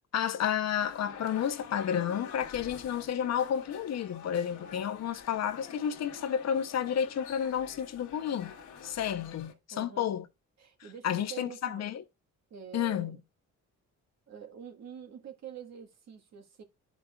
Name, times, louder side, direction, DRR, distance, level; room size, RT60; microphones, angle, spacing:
voice 1, 0.1-8.5 8.8-10.2 11.0-12.0 12.7-13.2, left 9 dB, 60° left, 0.8 m, -31 dB
sound 1, 0.8-9.5, left 6 dB, 75° left, 1.4 m, -47 dB
voice 2, 9.7-10.2 10.6-11.9 12.5-13.2 14.3-16.6, right 8 dB, 60° right, 1.6 m, -46 dB
11.0 x 5.1 x 2.4 m
cardioid pair, 90°, 30 cm